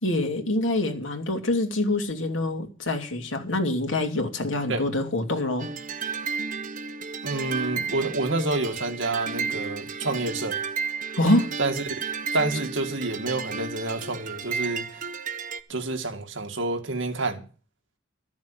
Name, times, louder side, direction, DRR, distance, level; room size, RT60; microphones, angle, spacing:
voice 1, 0.0-5.7 11.2-11.5, left 1 dB, 75° left, 2.9 m, -25 dB
sound 1, 5.6-15.6, right 5 dB, 45° right, 1.0 m, -33 dB
voice 2, 7.2-10.6 11.6-12.0 12.3-15.1 15.7-17.5, right 2 dB, 75° right, 2.2 m, -28 dB
13.5 x 7.3 x 8.1 m
head